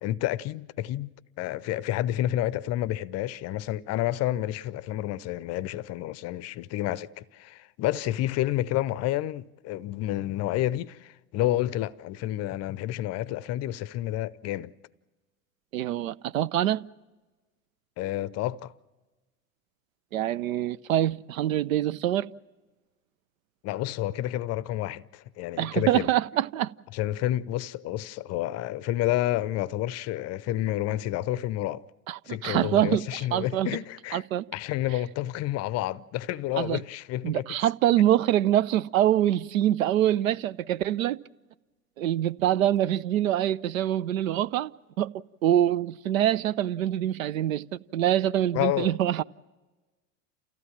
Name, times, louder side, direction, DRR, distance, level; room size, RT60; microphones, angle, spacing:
voice 1, 0.0-14.7 18.0-18.7 23.6-26.1 26.9-31.8 32.3-34.2 34.5-37.4 48.5-49.0, left 14 dB, 40° left, 0.6 m, -30 dB
voice 2, 15.7-16.8 20.1-22.3 25.6-26.7 32.1-33.0 33.3-33.7 34.1-34.4 36.6-36.8 37.2-41.2 42.0-44.7 45.0-45.1 45.4-49.2, right 12 dB, 70° right, 0.6 m, -25 dB
28.5 x 15.0 x 7.4 m
figure-of-eight pair, 75°, 42 cm